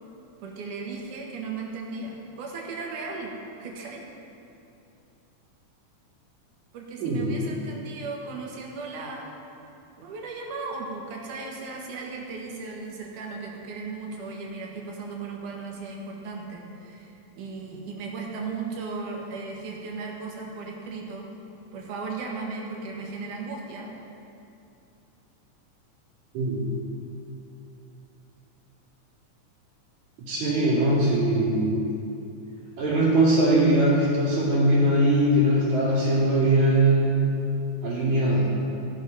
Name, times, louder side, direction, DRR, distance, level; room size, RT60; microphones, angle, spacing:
voice 1, 0.4-3.3 3.6-4.0 6.7-9.3 10.0-21.3 21.7-23.9, right 4 dB, 85° right, -1 dB, 3.0 m, -36 dB
voice 2, 7.0-7.3 26.3-26.6 30.3-31.8 32.8-37.2 37.8-38.5, right 1 dB, 70° right, -12 dB, 3.9 m, -21 dB
14.5 x 10.5 x 4.1 m, 2.7 s
omnidirectional pair, 3.4 m